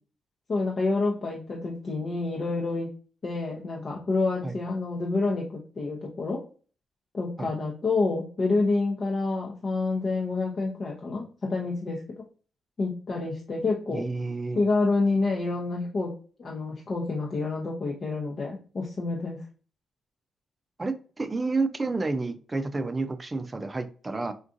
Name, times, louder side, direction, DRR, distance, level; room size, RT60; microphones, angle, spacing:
voice 1, 0.5-2.9 3.2-6.4 7.1-12.0 12.8-14.1 14.6-16.1 16.4-19.4, left 3 dB, 50° left, -2 dB, 0.7 m, -28 dB
voice 2, 13.9-14.6 20.8-24.3, right 3 dB, 30° right, 11 dB, 0.5 m, -30 dB
3.6 x 2.4 x 2.6 m, 0.39 s
supercardioid pair, 55°, 0 cm